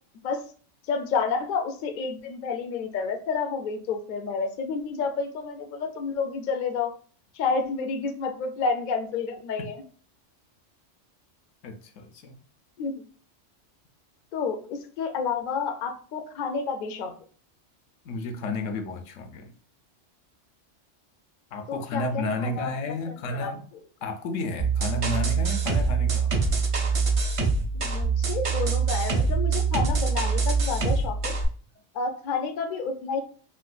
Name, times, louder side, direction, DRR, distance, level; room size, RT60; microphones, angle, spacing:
voice 1, 0.9-6.9 7.3-9.8 12.8-13.0 14.3-17.1 21.7-22.7 23.3-23.5 27.7-31.3 31.9-33.2, left 5 dB, 60° left, 6 dB, 0.5 m, -30 dB
voice 2, 11.6-12.4 18.0-19.5 21.5-23.6 24.0-26.3, left 2 dB, 80° left, 7 dB, 1.0 m, -32 dB
sound 1, 24.6-31.4, right 5 dB, 55° right, 0.3 m, -24 dB
4.4 x 2.1 x 2.3 m, 0.43 s
omnidirectional pair, 1.3 m